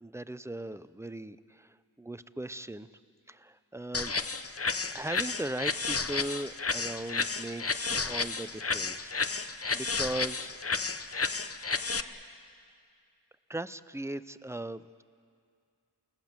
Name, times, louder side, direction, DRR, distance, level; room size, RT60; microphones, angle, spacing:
voice 1, 0.0-2.9 3.3-4.1 4.9-9.1 9.7-10.6 13.5-15.0, right 1 dB, 5° right, 13 dB, 0.6 m, -38 dB
sound 1, 3.9-12.0, left 4 dB, 35° left, 0.9 m, -32 dB
28.5 x 19.0 x 7.5 m, 2.3 s
wide cardioid pair, 65°, 41 cm